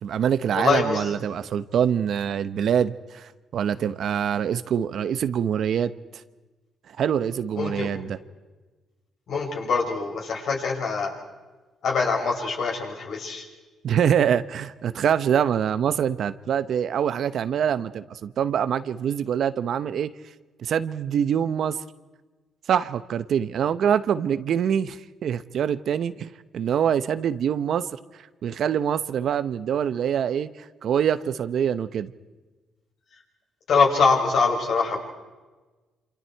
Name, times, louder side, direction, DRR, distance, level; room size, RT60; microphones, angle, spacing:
voice 1, 0.0-5.9 7.0-8.2 13.8-20.1 20.6-21.8 22.7-27.9 28.4-30.5 30.8-32.1, right 8 dB, 65° right, 14 dB, 0.9 m, -24 dB
voice 2, 0.5-1.1 7.6-7.9 9.3-11.1 11.8-13.4 33.7-35.0, left 4 dB, 65° left, 0 dB, 5.9 m, -23 dB
27.5 x 26.5 x 4.6 m, 1.2 s
cardioid pair, 90°, 0 cm